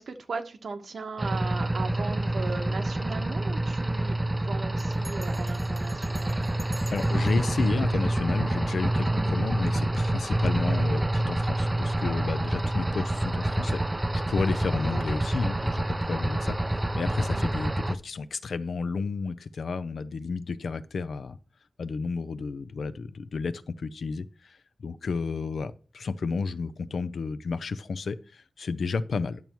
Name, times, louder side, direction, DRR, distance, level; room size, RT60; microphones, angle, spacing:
voice 1, 0.0-6.4 9.1-9.4 14.9-15.0 17.4-17.5, right 4 dB, 70° right, 1.1 m, -37 dB
sound 1, 1.2-17.9, right 1 dB, 15° right, 0.5 m, -27 dB
Bell, 2.7-3.0 3.3-3.4 3.6-4.0 4.8-8.9, equal, ahead, 0.9 m, -50 dB
voice 2, 6.9-21.4 21.8-29.4, left 4 dB, 75° left, 0.5 m, -32 dB
10.5 x 7.0 x 3.0 m
wide cardioid pair, 115°, 0 cm